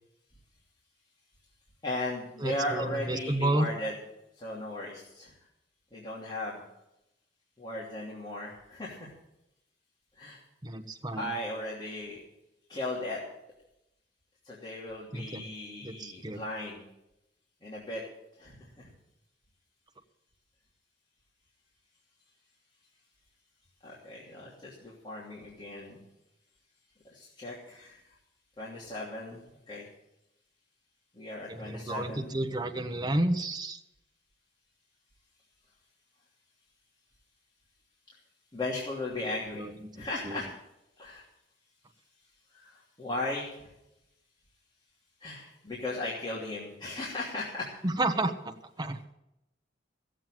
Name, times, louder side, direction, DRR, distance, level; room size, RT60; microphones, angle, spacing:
voice 1, 1.8-4.0 4.4-5.3 5.9-6.6 7.6-9.1 10.2-10.4 11.1-12.2 12.7-13.2 14.4-16.8 17.6-18.0 18.4-18.9 23.8-26.0 27.1-28.0 28.6-29.9 31.1-32.4 38.5-39.7 39.9-40.5 41.0-41.2 42.5-43.7 45.2-47.7, left 1 dB, 25° left, -6 dB, 2.9 m, -37 dB
voice 2, 2.4-3.7 10.6-11.3 15.1-15.4 15.8-16.4 31.5-33.8 39.5-39.7 40.3-40.4 47.8-48.5 48.8-49.0, right 1 dB, 25° right, 4 dB, 1.0 m, -31 dB
15.5 x 7.6 x 9.0 m, 0.86 s
head